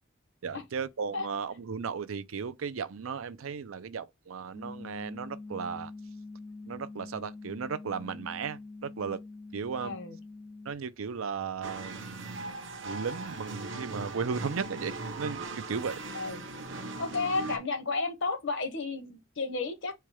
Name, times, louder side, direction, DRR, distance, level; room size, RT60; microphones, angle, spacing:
voice 1, 0.4-5.9 6.7-9.2 9.5-10.0 10.7-12.6 12.8-15.4 15.7-16.0, right 6 dB, 85° right, 0.5 m, -35 dB
sound 1, 4.5-10.7, left 3 dB, 15° left, 0.3 m, -45 dB
voice 2, 9.8-10.2 16.1-16.4 17.0-19.9, left 3 dB, 65° left, 1.1 m, -32 dB
sound 2, 11.6-17.6, right 3 dB, 65° right, 0.9 m, -39 dB
4.5 x 2.2 x 4.7 m
head